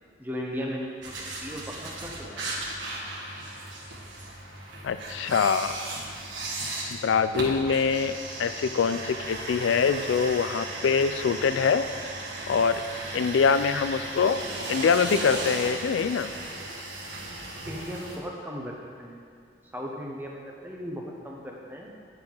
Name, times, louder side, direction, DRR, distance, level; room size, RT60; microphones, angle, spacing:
voice 1, 0.2-2.3 13.7-13.8 17.7-19.3 19.7-21.9, equal, 10° right, -1 dB, 0.9 m, -37 dB
sound 1, 1.0-18.2, right 2 dB, 75° right, 1.6 m, -36 dB
voice 2, 4.8-5.7 6.9-11.9 12.5-12.8 13.1-14.4 14.7-16.3, left 6 dB, 85° left, 12 dB, 0.4 m, -24 dB
9.4 x 4.8 x 5.3 m, 2.4 s
head